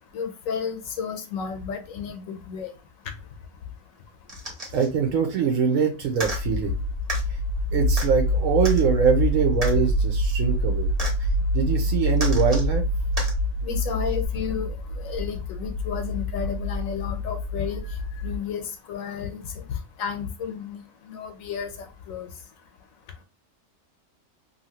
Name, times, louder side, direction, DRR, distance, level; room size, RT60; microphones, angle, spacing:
voice 1, 0.1-2.7 13.6-17.8 18.2-19.4 20.0-22.3, left 7 dB, 90° left, 1.1 m, -32 dB
sound 1, 4.3-4.9 6.1-6.4 7.1-7.2 8.0-8.1 8.6-8.8 9.6-9.7 11.0-11.1 12.2-12.7 13.2-13.3 14.2-14.3, right 2 dB, 30° right, 1.0 m, -32 dB
voice 2, 4.7-6.8 7.7-10.9 11.5-12.8, right 6 dB, 85° right, 1.0 m, -23 dB
sound 2, 6.2-18.4, left 1 dB, 65° left, 0.8 m, -26 dB
2.8 x 2.6 x 2.8 m
omnidirectional pair, 1.4 m